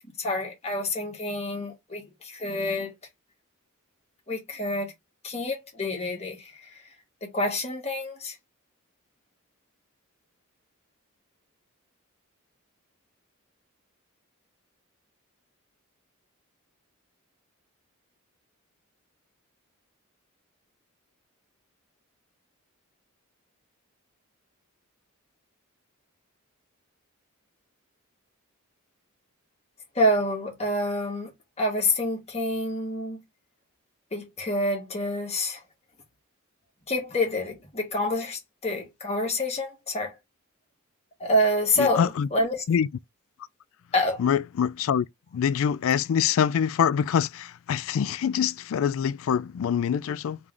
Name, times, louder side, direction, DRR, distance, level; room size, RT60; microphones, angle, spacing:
voice 1, 0.2-2.9 4.3-4.9 5.2-6.5 7.2-8.3 30.0-31.3 31.6-33.2 34.1-35.6 36.9-40.2 41.2-42.6 43.9-44.2, left 1 dB, 30° left, 1.6 m, -27 dB
voice 2, 41.8-42.3 42.7-42.9 44.2-45.1 45.3-50.4, left 8 dB, 65° left, 0.3 m, -25 dB
3.5 x 3.1 x 3.7 m
head